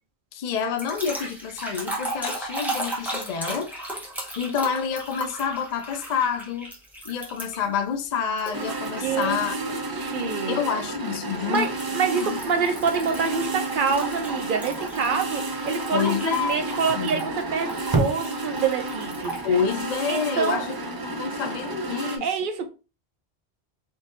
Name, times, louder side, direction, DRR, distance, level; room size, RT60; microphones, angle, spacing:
voice 1, 0.3-3.7 4.4-6.7 7.0-9.5 10.5-11.7 12.1-12.4 15.9-17.2 19.4-20.7 21.0-22.3, left 7 dB, 55° left, 0.5 m, -28 dB
sound 1, 0.8-7.8 8.4-9.2 9.7-10.0 11.5-19.5, right 1 dB, ahead, 0.8 m, -36 dB
sound 2, 8.5-22.2, right 2 dB, 40° right, 0.3 m, -31 dB
voice 2, 9.0-10.6 11.5-19.4 20.1-20.7 22.2-22.7, right 5 dB, 55° right, 0.7 m, -26 dB
3.9 x 2.6 x 2.5 m
omnidirectional pair, 1.1 m